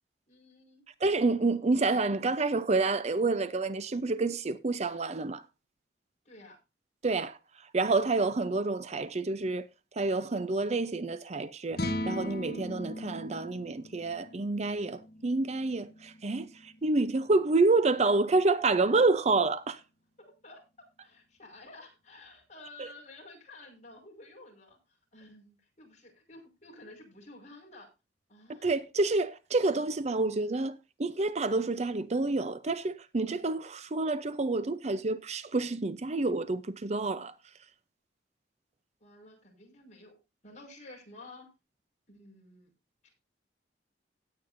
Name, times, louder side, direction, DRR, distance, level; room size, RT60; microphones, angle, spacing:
voice 1, 0.3-0.8 6.3-6.6 20.2-20.6 21.0-24.8 25.1-27.9 28.3-28.7 39.0-40.2 40.4-41.5 42.1-42.7 43.0-43.1, left 2 dB, 40° left, 5.2 m, -52 dB
voice 2, 1.0-5.4 7.0-7.4 7.7-9.6 10.0-16.5 16.8-19.8 22.8-22.9 28.6-37.3, right 3 dB, 40° right, 0.6 m, -28 dB
sound 1, 11.7-18.1, left 1 dB, 55° left, 2.5 m, -39 dB
17.0 x 8.9 x 2.6 m
head